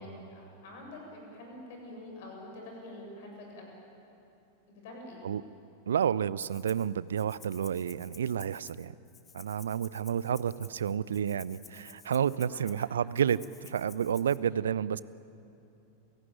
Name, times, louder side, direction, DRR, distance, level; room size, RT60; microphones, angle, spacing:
voice 1, 0.0-3.7 4.7-5.3 12.4-12.6 14.4-14.6, left 1 dB, 50° left, 1 dB, 7.6 m, -46 dB
voice 2, 5.9-8.9 9.3-15.0, right 8 dB, 65° right, 20 dB, 0.5 m, -30 dB
Rattle (instrument), 6.4-6.9 7.2-14.4, left 7 dB, 20° left, 1.5 m, -54 dB
29.5 x 17.0 x 9.1 m, 2.8 s
figure-of-eight pair, 90°, 0 cm